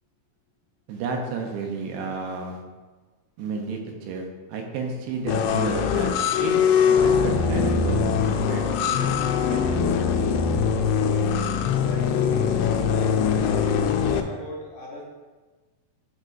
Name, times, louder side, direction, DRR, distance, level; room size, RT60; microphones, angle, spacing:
voice 1, 0.9-2.6 3.4-6.1 6.4-8.0 8.3-10.0, right 4 dB, 80° right, 2 dB, 3.0 m, -32 dB
sound 1, 5.3-14.2, left 6 dB, 85° left, 2.6 m, -22 dB
voice 2, 10.9-15.0, left 2 dB, 65° left, -3 dB, 2.3 m, -40 dB
11.5 x 6.0 x 2.7 m, 1.3 s
omnidirectional pair, 4.6 m